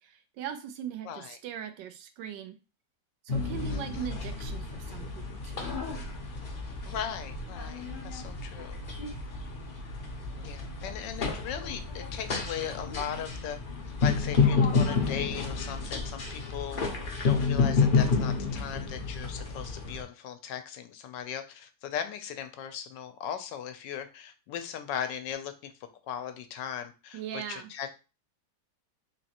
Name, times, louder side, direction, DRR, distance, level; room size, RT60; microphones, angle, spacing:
voice 1, 0.0-2.6 3.2-5.8 27.1-27.7, right 9 dB, 85° right, 8 dB, 1.3 m, -40 dB
voice 2, 1.1-1.4 3.7-4.1 6.8-8.8 10.4-13.6 14.0-16.8 17.2-25.7 26.1-27.9, left 9 dB, 85° left, 8 dB, 1.3 m, -38 dB
sound 1, 3.3-20.0, left 4 dB, 50° left, 0.6 m, -30 dB
3.8 x 3.0 x 2.9 m, 0.31 s
omnidirectional pair, 1.9 m